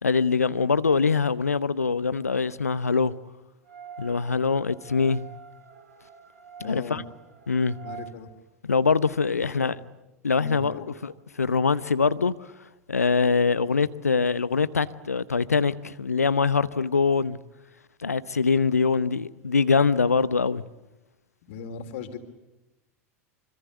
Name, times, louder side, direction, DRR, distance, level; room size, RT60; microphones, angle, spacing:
voice 1, 0.0-3.1 4.0-5.3 6.6-7.0 7.5-7.8 8.6-9.8 10.2-11.1 11.4-12.5 12.9-17.4 18.0-20.6, left 5 dB, 80° left, 0.9 m, -23 dB
sound 1, 3.6-8.1, right 7 dB, 65° right, 4.9 m, -46 dB
voice 2, 6.6-7.0 7.8-8.3 9.3-9.7 10.3-10.9 21.4-22.2, left 5 dB, 55° left, 3.6 m, -38 dB
26.0 x 26.0 x 8.2 m
figure-of-eight pair, 85°, 8 cm